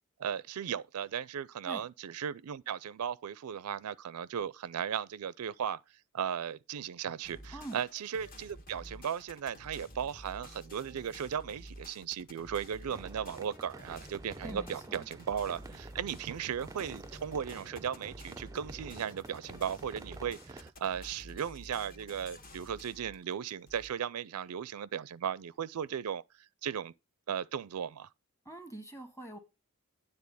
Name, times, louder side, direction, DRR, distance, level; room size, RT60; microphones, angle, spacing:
voice 1, 0.2-5.8 6.1-26.2 26.6-26.9 27.3-28.1, right 8 dB, 90° right, 0.4 m, -36 dB
sound 1, 7.2-23.9, equal, 40° left, 1.3 m, -51 dB
sound 2, 12.9-20.7, right 2 dB, 15° right, 0.4 m, -49 dB
voice 2, 14.4-15.1 28.4-29.4, right 1 dB, 15° left, 1.4 m, -44 dB
9.8 x 3.8 x 6.9 m
head